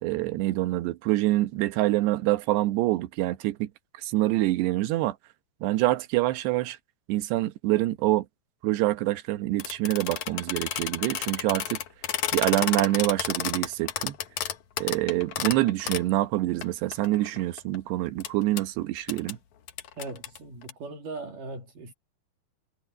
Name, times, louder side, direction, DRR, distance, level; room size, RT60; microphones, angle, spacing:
voice 1, 0.0-3.7 4.0-5.2 5.6-6.8 7.1-8.3 8.6-11.8 12.3-14.2 14.8-19.4, right 17 dB, 75° right, 2.9 m, -26 dB
sound 1, 9.6-16.1 16.6-16.7 16.9-17.8 18.2-18.3 18.6-18.7 19.1-19.3 19.7-20.7, left 10 dB, 85° left, 1.6 m, -31 dB
voice 2, 20.0-21.9, right 3 dB, 50° right, 3.6 m, -39 dB
omnidirectional pair, 5.2 m